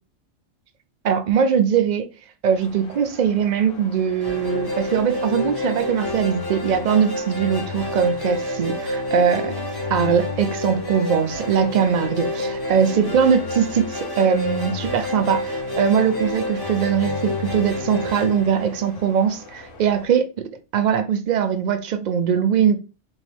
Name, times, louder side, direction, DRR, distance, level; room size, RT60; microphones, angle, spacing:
voice 1, 1.0-2.1 2.4-9.5 9.9-22.8, right 7 dB, 60° right, 0.4 m, -21 dB
sound 1, 2.5-20.0, left 3 dB, 80° left, 1.7 m, -45 dB
sound 2, 4.2-19.5, left 2 dB, 20° left, 0.8 m, -28 dB
3.5 x 3.1 x 3.3 m
omnidirectional pair, 1.3 m